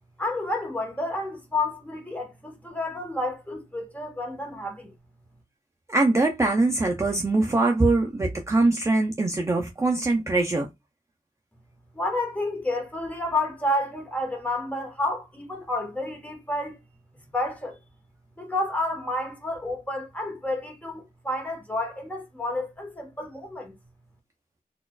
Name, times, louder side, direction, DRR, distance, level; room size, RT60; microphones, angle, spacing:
voice 1, 0.2-4.9 11.9-16.8 17.3-17.8 18.4-23.7, left 2 dB, 10° left, 1.1 m, -30 dB
voice 2, 5.9-10.7, right 2 dB, 20° right, 0.4 m, -22 dB
4.1 x 2.4 x 2.3 m
wide cardioid pair, 115°, 15 cm